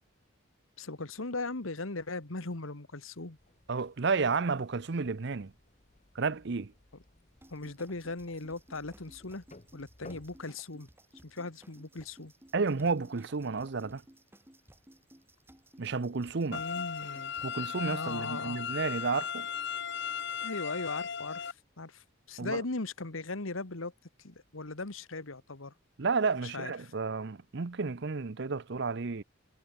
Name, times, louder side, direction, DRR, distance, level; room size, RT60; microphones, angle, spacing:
voice 1, 0.8-3.4 7.5-9.4 9.7-10.9 11.2-12.3 16.5-17.3 17.9-18.6 20.4-23.9 24.2-25.7 26.4-26.9, left 3 dB, 85° left, 1.7 m, -38 dB
sound 1, 3.4-10.4, left 2 dB, 35° left, 1.3 m, -57 dB
voice 2, 3.7-5.5 6.1-6.7 12.5-14.0 15.8-16.6 17.4-19.5 22.4-22.6 26.0-29.2, right 4 dB, 55° right, 0.7 m, -31 dB
sound 2, 7.4-18.2, right 1 dB, 10° right, 3.0 m, -59 dB
sound 3, 16.5-21.5, left 7 dB, 55° left, 1.0 m, -36 dB
head